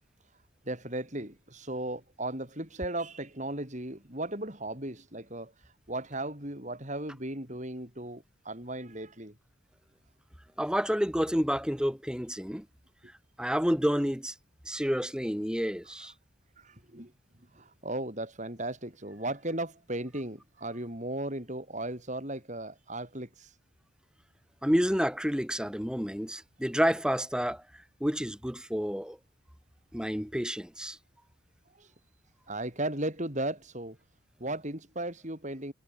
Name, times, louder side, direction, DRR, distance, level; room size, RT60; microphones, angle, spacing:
voice 1, 0.6-9.3 15.8-16.1 16.6-17.1 17.5-23.5 31.7-31.9 32.5-34.0 34.4-35.7, right 1 dB, 35° right, 5.1 m, -36 dB
voice 2, 10.6-12.6 13.4-14.3 14.7-16.1 24.6-27.6 28.0-29.2 29.9-31.0, equal, 5° right, 7.7 m, -29 dB
head